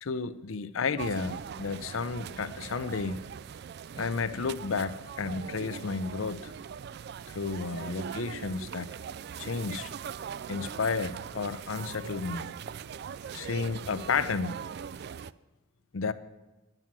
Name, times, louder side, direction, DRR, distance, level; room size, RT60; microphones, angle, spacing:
voice 1, 0.0-3.2 4.0-6.5 7.3-8.9 9.4-9.9 10.5-12.5 13.3-14.6 15.9-16.1, left 4 dB, 75° left, 0.6 m, -32 dB
sound 1, 1.0-15.3, right 7 dB, 50° right, 0.3 m, -41 dB
11.0 x 9.0 x 7.5 m
head